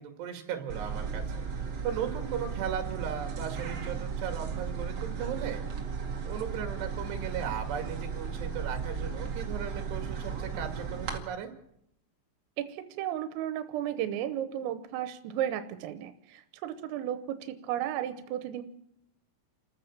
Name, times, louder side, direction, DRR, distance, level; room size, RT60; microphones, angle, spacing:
voice 1, 0.0-1.5 1.8-5.6 6.2-11.5, right 8 dB, 60° right, 5 dB, 4.1 m, -37 dB
sound 1, 0.7-11.2, right 6 dB, 45° right, 2.4 m, -35 dB
voice 2, 12.6-18.6, right 11 dB, 90° right, 9 dB, 3.7 m, -34 dB
29.0 x 14.5 x 7.3 m, 0.80 s
omnidirectional pair, 5.8 m